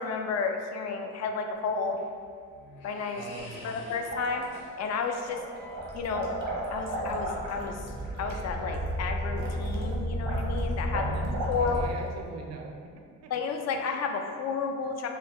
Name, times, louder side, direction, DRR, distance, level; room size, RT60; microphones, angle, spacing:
voice 1, 0.0-2.0 2.8-4.5 4.8-5.4 5.9-6.3 6.7-7.9 8.2-11.1 11.5-11.8 13.3-15.1, left 5 dB, 60° left, 4 dB, 0.5 m, -32 dB
sound 1, 1.7-6.5, left 2 dB, 85° left, 0.8 m, -49 dB
voice 2, 3.1-3.9 10.9-13.3 13.7-14.0, right 3 dB, 60° right, 2 dB, 0.5 m, -40 dB
sound 2, 4.0-4.9 5.2-11.9, right 1 dB, 90° right, 0.9 m, -37 dB
sound 3, 5.7-11.9, equal, 5° right, 0.4 m, -33 dB
3.9 x 2.3 x 3.4 m, 2.1 s
cardioid pair, 90°, 30 cm